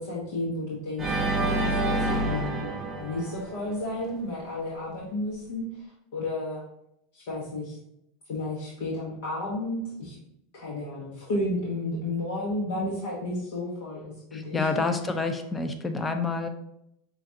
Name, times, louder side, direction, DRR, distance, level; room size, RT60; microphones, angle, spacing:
voice 1, 0.0-2.6 2.9-6.6 7.1-7.8 8.3-10.2 10.5-14.7, left 1 dB, 75° left, -5 dB, 1.0 m, -32 dB
Organ, 1.0-4.1, right 2 dB, 20° right, 0.7 m, -28 dB
voice 2, 14.3-16.5, left 4 dB, 15° left, 7 dB, 0.5 m, -28 dB
5.7 x 2.4 x 2.7 m, 0.79 s
supercardioid pair, 120°, 0 cm